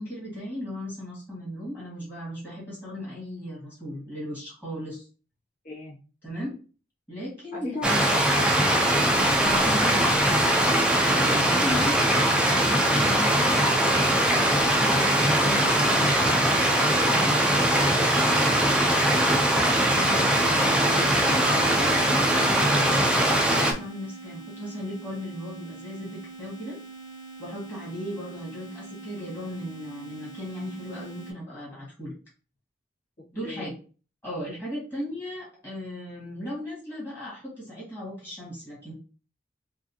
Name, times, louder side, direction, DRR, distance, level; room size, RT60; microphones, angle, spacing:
voice 1, 0.0-5.1 6.2-6.6 7.1-7.9 9.4-16.4 16.7-20.7 21.3-26.8 27.4-32.1 33.3-33.7 34.2-38.9, equal, 10° left, -7 dB, 1.8 m, -37 dB
voice 2, 5.6-6.0 7.5-9.1 33.4-33.7, left 1 dB, 45° left, -7 dB, 1.9 m, -36 dB
Stream, 7.8-23.7, right 1 dB, 5° right, 0.4 m, -21 dB
sound 1, 19.9-31.3, right 3 dB, 90° left, 0.9 m, -44 dB
4.8 x 2.5 x 2.8 m, 0.37 s
head